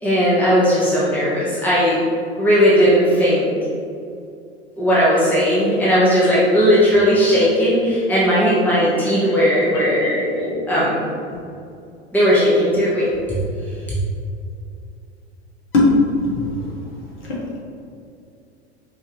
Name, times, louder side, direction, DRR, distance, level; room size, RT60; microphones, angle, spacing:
voice 1, 0.0-2.0 2.4-3.5 4.8-10.0 10.7-11.0 12.1-13.1, equal, 5° left, -9 dB, 1.0 m, -16 dB
voice 2, 10.0-10.6 15.7-15.9 16.2-16.4, left 2 dB, 35° left, -5 dB, 1.4 m, -19 dB
5.5 x 2.8 x 3.0 m, 2.5 s
figure-of-eight pair, 85°, 34 cm